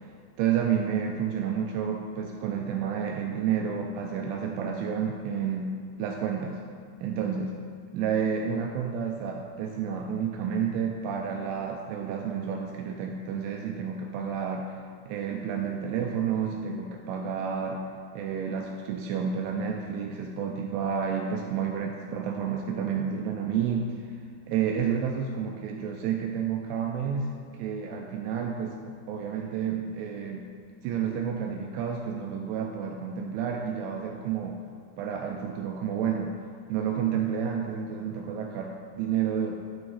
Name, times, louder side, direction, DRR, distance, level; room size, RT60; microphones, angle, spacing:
voice 1, 0.4-5.7 6.0-6.6 7.0-7.5 7.9-14.8 15.1-17.8 18.1-24.1 24.5-30.5 30.8-34.6 35.0-36.4 36.7-39.6, right 7 dB, 85° right, 2 dB, 2.7 m, -30 dB
11.5 x 4.5 x 4.1 m, 2.2 s
omnidirectional pair, 6.0 m